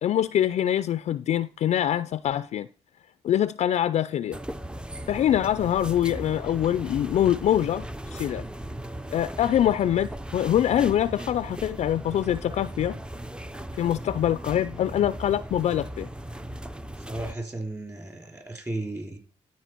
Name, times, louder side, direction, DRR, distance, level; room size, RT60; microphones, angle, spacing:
voice 1, 0.0-2.7 3.2-4.4 5.1-8.4 9.1-13.0 13.8-16.1, left 11 dB, 65° left, 0.4 m, -24 dB
sound 1, 4.3-17.3, right 1 dB, 5° right, 0.5 m, -37 dB
voice 2, 17.1-19.2, right 2 dB, 25° right, 2.9 m, -34 dB
12.0 x 4.7 x 4.4 m
cardioid pair, 75°, 12 cm